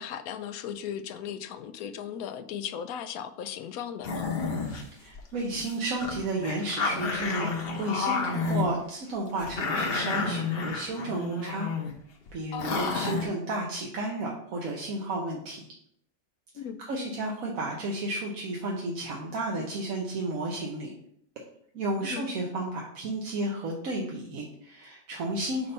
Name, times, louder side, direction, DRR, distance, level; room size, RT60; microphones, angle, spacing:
voice 1, 0.0-4.3 12.5-12.9 16.5-16.8 22.0-22.3, left 8 dB, 80° left, 10 dB, 1.0 m, -37 dB
sound 1, 4.0-4.8 5.1-5.2 5.5-5.7 6.0-8.6 9.4-11.9 12.3-12.4 12.6-13.3, left 4 dB, 45° left, 1.0 m, -30 dB
voice 2, 4.6-11.7 12.3-15.7 16.8-20.9 21.7-25.7, right 2 dB, 70° right, -2 dB, 1.3 m, -32 dB
4.4 x 4.0 x 5.3 m, 0.68 s
omnidirectional pair, 1.5 m